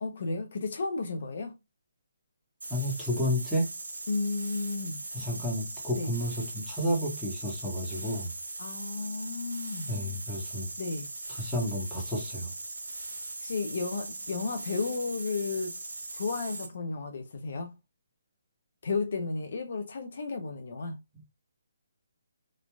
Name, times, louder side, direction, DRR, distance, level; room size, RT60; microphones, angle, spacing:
voice 1, 0.0-1.5 4.1-5.0 6.0-6.1 8.6-9.9 10.8-11.1 13.4-15.7 16.1-17.8 18.8-21.0, left 4 dB, 60° left, 0.6 m, -33 dB
sound 1, 2.6-16.7, right 2 dB, 85° right, 1.2 m, -40 dB
voice 2, 2.7-3.7 5.1-8.3 9.9-10.7 11.3-12.5, equal, 5° left, 1.2 m, -31 dB
3.1 x 2.4 x 2.2 m
hypercardioid pair, 155°, 0 cm